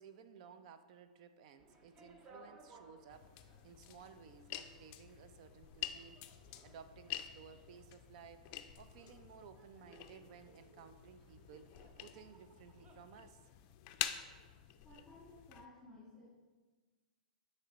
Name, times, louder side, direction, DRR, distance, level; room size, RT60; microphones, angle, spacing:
voice 1, 0.0-6.2 6.6-8.5 8.8-13.4, right 7 dB, 55° right, 10 dB, 0.5 m, -57 dB
sound 1, 1.6-13.0, right 2 dB, 25° right, 0.8 m, -64 dB
sound 2, 3.1-15.7, left 12 dB, 40° left, 0.4 m, -48 dB
voice 2, 14.8-16.4, left 2 dB, 5° left, -8 dB, 1.6 m, -57 dB
8.2 x 3.3 x 4.1 m, 1.3 s
hypercardioid pair, 125°, 4 cm